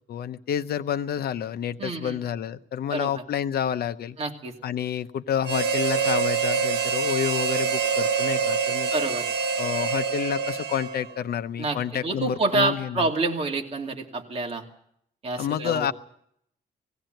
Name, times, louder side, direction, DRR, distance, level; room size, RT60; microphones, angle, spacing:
voice 1, 0.1-4.2 4.6-9.0 9.6-13.1 15.4-15.9, left 9 dB, 65° left, 12 dB, 0.8 m, -29 dB
voice 2, 1.8-2.2 2.9-3.2 4.2-4.5 8.9-9.3 11.6-11.8 12.0-14.6 15.2-15.9, right 3 dB, 35° right, 2 dB, 2.6 m, -27 dB
Harmonica, 5.4-11.2, right 5 dB, 85° right, 1.0 m, -26 dB
19.5 x 16.0 x 9.1 m, 0.71 s
wide cardioid pair, 170°, 17 cm